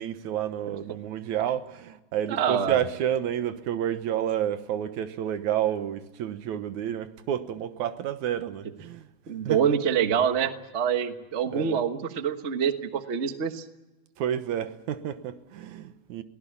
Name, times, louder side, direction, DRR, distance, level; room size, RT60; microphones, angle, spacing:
voice 1, 0.0-9.1 9.4-9.6 11.5-11.8 14.2-16.2, right 10 dB, 85° right, 2.5 m, -30 dB
voice 2, 2.3-2.8 9.3-13.6, right 7 dB, 45° right, 0.9 m, -26 dB
22.5 x 18.5 x 8.5 m
omnidirectional pair, 3.3 m